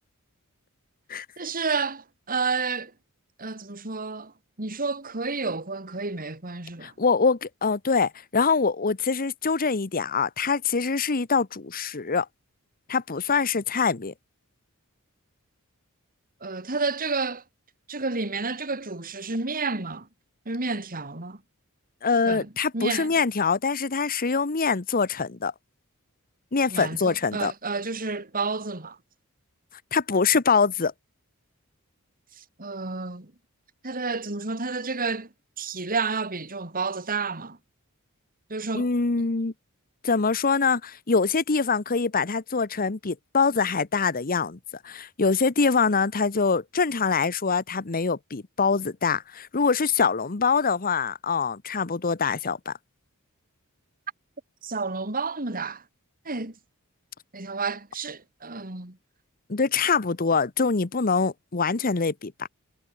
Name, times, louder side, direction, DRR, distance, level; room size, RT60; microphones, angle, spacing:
voice 1, 1.4-2.9 3.4-4.3 4.6-6.9 16.4-17.4 17.9-20.1 20.4-21.4 22.3-23.1 26.7-29.0 32.4-33.3 33.8-35.3 35.6-37.6 38.5-38.9 54.6-55.8 56.2-56.5 57.3-59.0, right 4 dB, 40° right, 3.3 m, -30 dB
voice 2, 6.8-12.3 12.9-14.1 22.0-25.5 26.5-27.5 29.9-30.9 38.7-39.5 40.0-44.6 44.8-52.7 59.5-62.3, left 5 dB, 40° left, 1.0 m, -24 dB
head